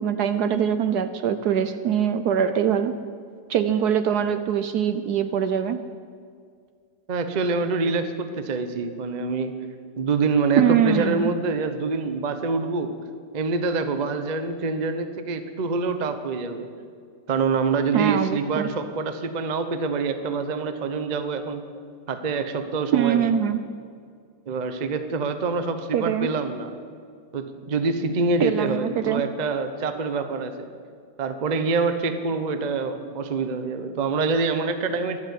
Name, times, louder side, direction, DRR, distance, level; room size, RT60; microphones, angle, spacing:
voice 1, 0.0-2.9 3.5-5.8 10.6-11.3 17.9-18.7 22.9-23.6 25.9-26.3 28.4-29.2, right 8 dB, 65° right, 10 dB, 1.1 m, -23 dB
voice 2, 7.1-9.5 10.0-12.9 13.3-16.7 17.3-21.6 22.1-23.3 24.5-26.7 27.3-30.5 31.2-35.2, right 4 dB, 35° right, 8 dB, 0.7 m, -26 dB
12.0 x 11.5 x 8.4 m, 2.1 s
omnidirectional pair, 2.0 m